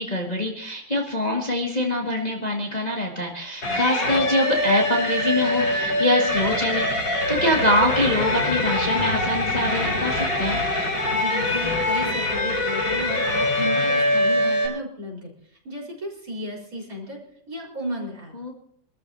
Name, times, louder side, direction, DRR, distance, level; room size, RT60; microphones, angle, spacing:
voice 1, 0.0-10.6 18.3-18.5, left 1 dB, 20° left, -1 dB, 1.8 m, -24 dB
sound 1, 3.6-14.7, left 1 dB, 75° left, 5.9 m, -23 dB
sound 2, 7.8-12.5 12.8-12.9, equal, 80° right, 4.1 m, -38 dB
voice 2, 11.1-17.2 17.5-18.3, equal, 45° right, -3 dB, 4.9 m, -34 dB
26.0 x 13.5 x 2.7 m, 0.64 s
omnidirectional pair, 2.1 m